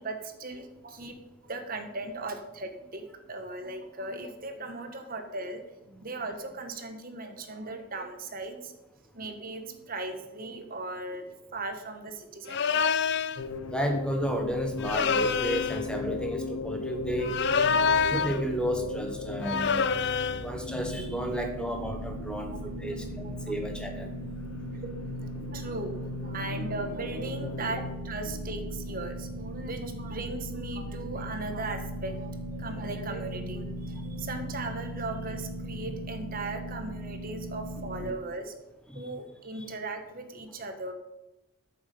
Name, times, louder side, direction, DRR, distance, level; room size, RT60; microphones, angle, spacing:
voice 1, 0.0-5.6 5.9-8.7 9.1-12.8 17.6-18.1 20.4-20.5 22.3-23.7 24.8-38.5 38.9-40.9, right 2 dB, 40° right, 6 dB, 1.4 m, -38 dB
sound 1, 12.5-13.4 14.8-15.8 17.2-18.4 19.4-20.5, left 5 dB, 50° left, 0.5 m, -26 dB
sound 2, 13.4-28.0, left 3 dB, 75° left, 1.1 m, -37 dB
voice 2, 13.7-17.3 18.1-19.9 20.4-24.1 35.8-35.9 38.0-38.1 38.9-39.0 39.5-39.6, equal, 5° left, 4 dB, 1.2 m, -32 dB
sound 3, 20.7-38.1, right 1 dB, 30° left, 1.2 m, -39 dB
14.0 x 7.3 x 5.5 m, 0.97 s
head